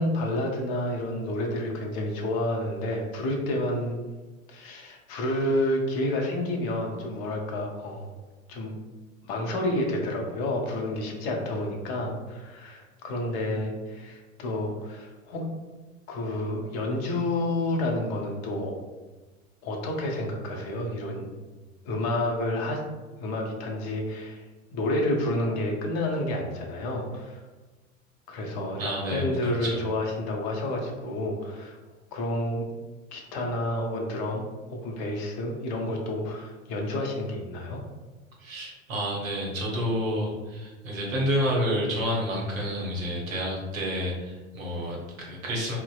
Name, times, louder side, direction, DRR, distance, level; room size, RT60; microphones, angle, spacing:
voice 1, 0.0-4.0 4.5-8.1 8.5-8.7 9.2-15.4 16.1-18.7 19.6-21.3 21.8-22.8 23.2-24.4 24.7-27.4 28.3-31.8 32.1-32.7 33.1-34.4 34.7-37.8, left 1 dB, 35° left, 1 dB, 0.5 m, -29 dB
voice 2, 28.8-29.9 38.4-45.8, equal, 70° right, -2 dB, 0.9 m, -29 dB
2.6 x 2.1 x 2.3 m, 1.2 s
figure-of-eight pair, 85°, 42 cm